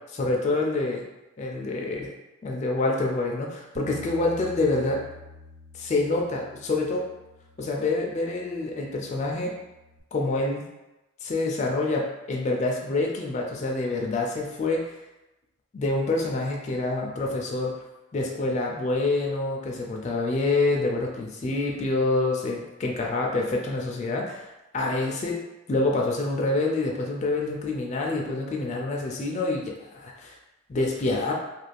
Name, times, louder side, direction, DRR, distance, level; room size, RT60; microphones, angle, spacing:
voice 1, 0.1-1.0 1.4-2.1 2.4-5.0 5.7-7.0 7.6-9.5 10.1-10.6 11.2-14.9 15.7-17.7 18.1-24.5 24.7-25.4 25.7-30.3 30.7-31.3, left 2 dB, 35° left, -1 dB, 0.3 m, -27 dB
Bass guitar, 3.8-10.0, left 2 dB, 55° right, 0.4 m, -48 dB
2.4 x 2.3 x 3.2 m, 0.99 s
head